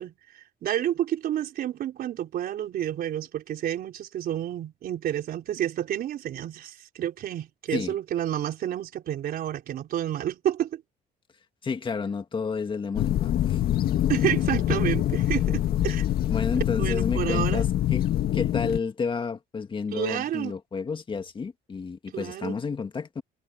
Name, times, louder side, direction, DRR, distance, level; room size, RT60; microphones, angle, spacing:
voice 1, 0.0-10.8 14.1-16.1 16.8-17.7 19.9-20.6 22.1-22.6, right 11 dB, 60° right, 4.0 m, -30 dB
voice 2, 11.6-13.6 16.3-18.0 18.3-23.2, left 5 dB, 30° left, 2.0 m, -31 dB
sound 1, 12.9-18.8, left 12 dB, 65° left, 1.9 m, -25 dB
cardioid pair, 110°, 17 cm